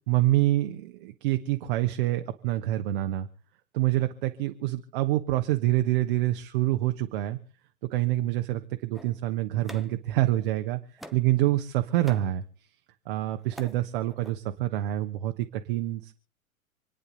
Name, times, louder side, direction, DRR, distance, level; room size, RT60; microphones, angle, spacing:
voice 1, 0.1-3.3 3.7-7.4 7.9-10.8 11.1-12.4 13.1-16.1, right 15 dB, 40° right, 7 dB, 1.2 m, -26 dB
sound 1, 8.9-10.5 11.0-11.4 11.8-12.4 13.1-13.8 14.1-14.3, equal, ahead, 0.8 m, -46 dB
28.0 x 9.7 x 4.0 m, 0.42 s
figure-of-eight pair, 105°, 43 cm